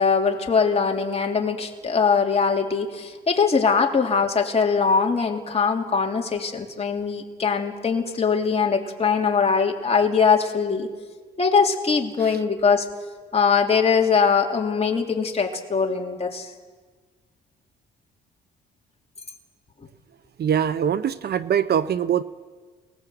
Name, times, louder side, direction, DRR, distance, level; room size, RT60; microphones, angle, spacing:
voice 1, 0.0-10.9 11.4-12.9 13.3-16.5, left 5 dB, 30° left, 2 dB, 3.2 m, -21 dB
voice 2, 20.4-22.2, right 8 dB, 55° right, 14 dB, 0.8 m, -23 dB
28.0 x 19.5 x 8.0 m, 1.4 s
cardioid pair, 90°, 20 cm